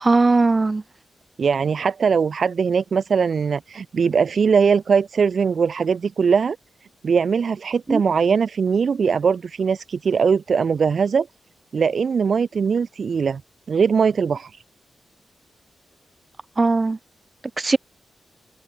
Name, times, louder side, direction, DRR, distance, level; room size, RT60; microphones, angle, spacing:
voice 1, 0.0-0.8 7.9-8.0 16.6-17.0 17.6-17.8, right 3 dB, 35° right, 3.4 m, -18 dB
voice 2, 1.4-6.6 7.0-11.3 11.7-13.4 13.7-14.6, right 6 dB, 60° right, 2.1 m, -20 dB
cardioid pair, 60°, 0 cm